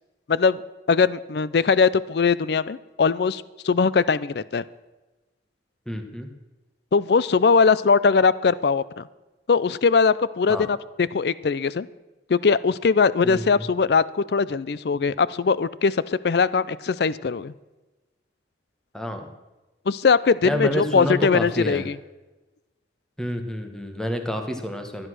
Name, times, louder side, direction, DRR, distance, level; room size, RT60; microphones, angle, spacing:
voice 1, 0.3-0.6 0.9-4.6 6.9-9.0 9.5-11.9 12.3-17.5 19.9-22.0, left 5 dB, 60° left, 18 dB, 0.4 m, -21 dB
voice 2, 5.9-6.3 10.5-10.7 13.2-13.7 18.9-19.3 20.4-21.9 23.2-25.1, left 1 dB, 5° left, 5 dB, 1.2 m, -29 dB
13.5 x 9.8 x 6.2 m, 1.1 s
head